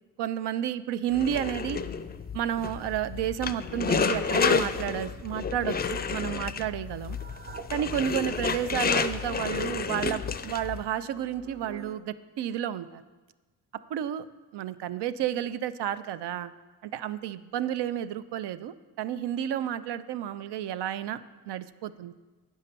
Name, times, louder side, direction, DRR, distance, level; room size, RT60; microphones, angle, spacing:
voice 1, 0.2-1.8 2.3-5.8 6.1-7.2 7.7-13.0 13.9-14.3 14.5-16.5 16.8-21.2 21.5-22.1, right 10 dB, 90° right, 15 dB, 0.5 m, -31 dB
sound 1, 1.1-10.8, left 6 dB, 25° left, 0.4 m, -30 dB
sound 2, 5.5-5.8 6.9-8.3 8.7-8.8 9.2-9.5 10.2-12.0, right 4 dB, 25° right, 0.5 m, -46 dB
9.2 x 5.5 x 6.7 m, 1.3 s
cardioid pair, 105°, 39 cm